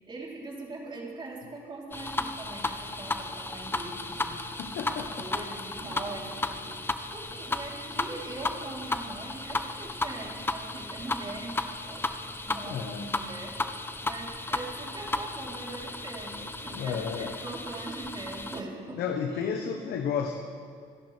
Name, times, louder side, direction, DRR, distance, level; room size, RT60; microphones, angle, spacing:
voice 1, 0.0-4.4 4.8-6.8 7.1-11.6 11.9-12.0 12.4-19.0 19.3-19.8, right 2 dB, 30° right, -3 dB, 3.6 m, -41 dB
sound 1, 1.9-18.6, left 2 dB, 15° left, 0.7 m, -34 dB
voice 2, 4.6-5.3 12.6-13.1 16.7-17.3 18.9-20.4, left 7 dB, 70° left, 4 dB, 1.1 m, -32 dB
sound 2, 5.8-8.1, right 2 dB, 60° right, 3.5 m, -50 dB
27.5 x 11.0 x 3.4 m, 2.2 s
cardioid pair, 110°, 17 cm